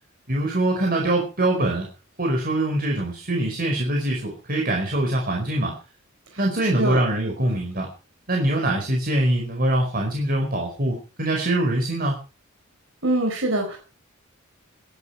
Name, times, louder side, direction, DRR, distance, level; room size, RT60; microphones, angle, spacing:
voice 1, 0.3-1.9 2.2-5.8 6.4-7.9 8.3-12.2, right 1 dB, 50° right, 1 dB, 4.8 m, -23 dB
voice 2, 6.3-7.0 13.0-13.8, right 1 dB, 75° right, 2 dB, 4.5 m, -24 dB
22.0 x 11.5 x 4.6 m, 0.35 s
head